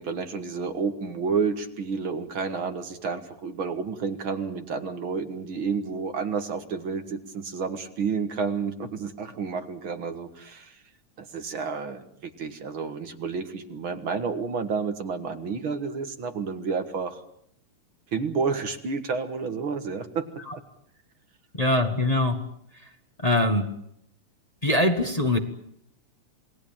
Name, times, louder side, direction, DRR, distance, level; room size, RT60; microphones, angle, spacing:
voice 1, 0.0-10.8 11.2-17.2 18.1-20.3, right 5 dB, 45° right, 8 dB, 1.9 m, -30 dB
voice 2, 21.6-22.4 23.2-23.7 24.6-25.4, left 1 dB, 85° left, 4 dB, 0.3 m, -22 dB
28.5 x 19.0 x 8.9 m, 0.71 s
omnidirectional pair, 3.8 m